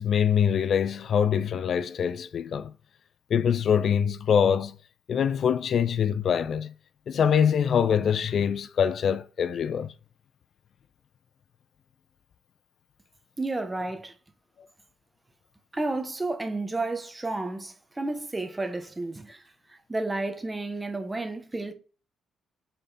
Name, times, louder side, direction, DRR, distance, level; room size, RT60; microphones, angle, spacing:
voice 1, 0.0-2.7 3.3-4.8 5.1-6.7 7.1-9.9, left 8 dB, 60° left, 0.4 m, -24 dB
voice 2, 13.4-14.1 15.7-19.4 19.7-21.7, right 2 dB, 20° right, 1.1 m, -31 dB
5.5 x 4.2 x 4.1 m
cardioid pair, 90°, 0 cm